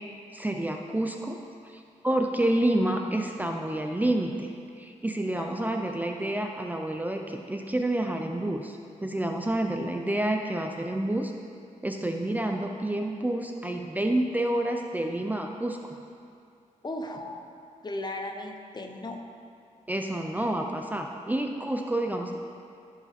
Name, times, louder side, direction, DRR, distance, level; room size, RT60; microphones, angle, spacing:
voice 1, 0.3-1.4 1.6-4.5 4.8-11.3 11.8-15.8 19.9-22.4, right 1 dB, 10° right, 3 dB, 0.5 m, -29 dB
voice 2, 5.3-5.7 16.8-17.5 17.8-19.2, left 1 dB, 30° left, 4 dB, 0.7 m, -36 dB
14.0 x 4.9 x 4.2 m, 2.5 s
wide cardioid pair, 110°, 13 cm